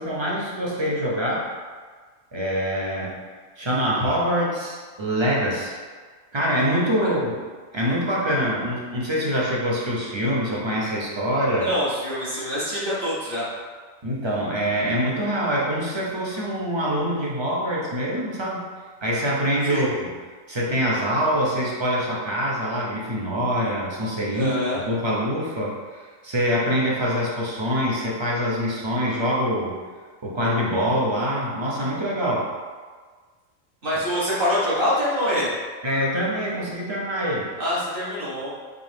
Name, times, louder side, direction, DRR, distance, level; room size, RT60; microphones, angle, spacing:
voice 1, 0.0-1.5 2.3-3.2 3.6-5.8 6.3-7.4 7.7-11.7 14.0-18.6 19.0-20.1 20.5-29.8 30.2-32.5 35.8-37.5, equal, 30° right, -5 dB, 0.6 m, -24 dB
voice 2, 11.6-13.4 19.7-19.9 24.3-24.8 33.8-35.5 37.6-38.5, equal, 45° right, -8 dB, 1.3 m, -25 dB
3.9 x 3.1 x 3.3 m, 1.5 s
omnidirectional pair, 1.4 m